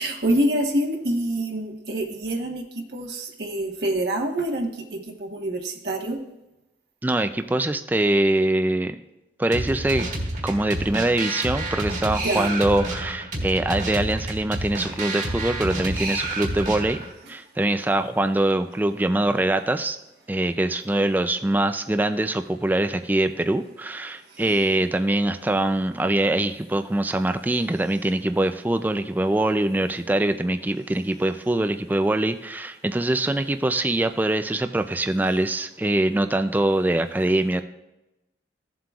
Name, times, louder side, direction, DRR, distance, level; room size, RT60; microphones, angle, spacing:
voice 1, 0.0-2.6 2.9-4.8 5.2-6.2 12.2-12.5 24.4-24.6, right 1 dB, 65° right, 1 dB, 1.1 m, -26 dB
voice 2, 7.0-9.0 9.4-10.1 10.4-17.0 17.3-20.0 20.3-37.6, right 1 dB, 10° right, 8 dB, 0.3 m, -23 dB
sound 1, 9.5-17.1, right 1 dB, 45° right, 1.5 m, -29 dB
15.0 x 7.5 x 2.4 m, 0.96 s
head